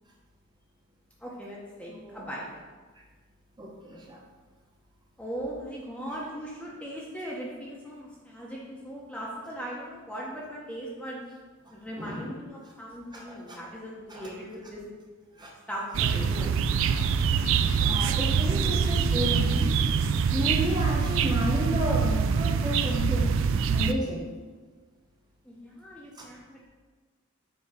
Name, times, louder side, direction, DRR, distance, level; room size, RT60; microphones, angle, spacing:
voice 1, 1.2-2.5 5.2-11.2 11.7-14.8 15.7-16.5 25.4-26.7, equal, 5° left, -4 dB, 0.7 m, -39 dB
voice 2, 3.6-4.2 12.0-12.3 13.1-13.6 14.1-14.3 15.4-15.5 16.9-17.0 17.7-19.8 20.3-23.2 23.7-24.2 26.2-26.3, equal, 20° right, -2 dB, 0.9 m, -32 dB
sound 1, 15.9-23.9, right 6 dB, 60° right, 0.3 m, -24 dB
7.1 x 2.8 x 4.9 m, 1.4 s
head